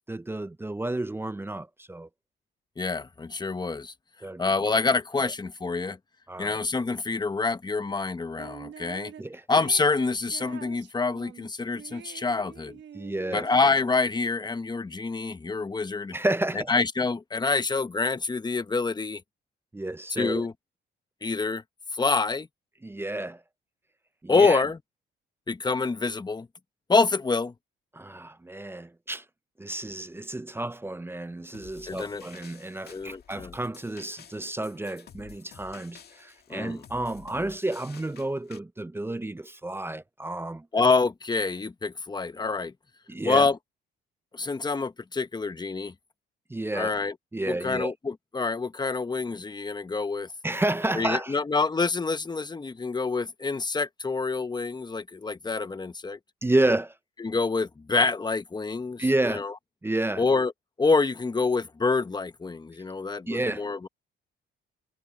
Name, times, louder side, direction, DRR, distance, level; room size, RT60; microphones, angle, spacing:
voice 1, 0.1-2.1 4.2-4.5 5.2-5.3 6.3-6.6 9.2-9.4 12.9-13.5 16.1-16.7 19.7-20.4 22.8-23.4 24.2-24.6 27.9-29.2 29.6-40.7 43.1-43.5 46.5-46.9 47.3-47.9 50.4-51.4 56.4-56.9 59.0-59.4 59.8-60.2 63.3-63.6, right 2 dB, 10° right, 0.6 m, -30 dB
voice 2, 2.8-3.9 4.4-6.0 6.4-9.1 9.5-12.8 13.3-16.2 16.5-19.2 20.1-20.5 21.2-21.6 22.0-22.5 24.3-24.8 25.5-26.5 26.9-27.5 31.9-32.2 32.9-33.5 36.5-36.8 40.7-42.7 43.2-43.6 44.3-45.9 46.7-47.1 47.5-50.3 50.9-56.2 57.2-59.5 60.2-60.5 60.8-63.9, left 4 dB, 20° left, 1.0 m, -27 dB
sound 1, 8.4-9.2 9.5-14.1, right 9 dB, 65° right, 1.2 m, -46 dB
sound 2, 31.5-38.6, left 8 dB, 55° left, 1.9 m, -51 dB
cardioid pair, 90°, 20 cm